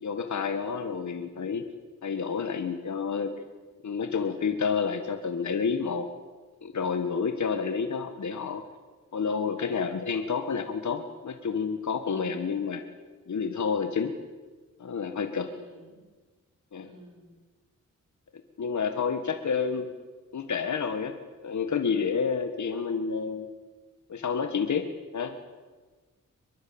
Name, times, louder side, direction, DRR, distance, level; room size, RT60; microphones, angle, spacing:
voice 1, 0.0-1.7 2.0-3.3 3.8-6.1 6.6-8.6 9.1-12.8 13.3-14.1 14.8-15.5 16.7-16.9 18.6-19.9 20.3-21.1 21.4-23.5 24.1-25.3, left 6 dB, 65° left, 7 dB, 1.7 m, -29 dB
voice 2, 12.0-12.5 15.5-16.1 16.8-17.3, right 3 dB, 75° right, 2 dB, 5.8 m, -50 dB
24.0 x 22.0 x 8.8 m, 1.4 s
wide cardioid pair, 125°, 31 cm